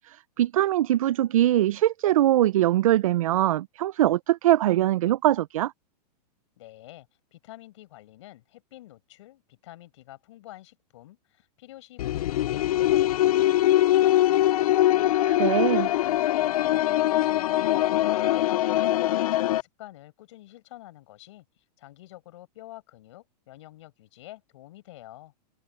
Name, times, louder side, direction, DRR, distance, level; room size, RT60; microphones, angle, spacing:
voice 1, 0.1-5.7 15.3-15.9, right 13 dB, 55° right, 0.4 m, -22 dB
voice 2, 6.6-14.8 15.4-18.3 18.7-21.4 21.8-25.3, left 16 dB, 45° left, 6.7 m, -48 dB
sound 1, 12.0-19.6, left 14 dB, 60° left, 0.4 m, -22 dB
supercardioid pair, 180°, 21 cm